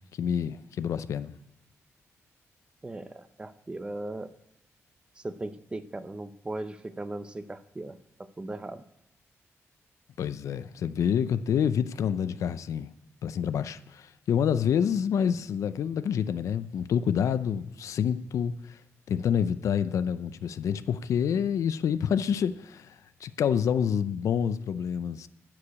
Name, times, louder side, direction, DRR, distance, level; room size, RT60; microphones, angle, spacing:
voice 1, 0.2-1.3 10.2-12.9 13.2-18.8 19.1-22.9 23.2-25.3, left 8 dB, 85° left, 0.5 m, -27 dB
voice 2, 2.8-4.3 5.2-8.0 8.4-8.8, right 2 dB, 20° right, 0.6 m, -38 dB
13.0 x 4.9 x 8.5 m
wide cardioid pair, 140°, 5 cm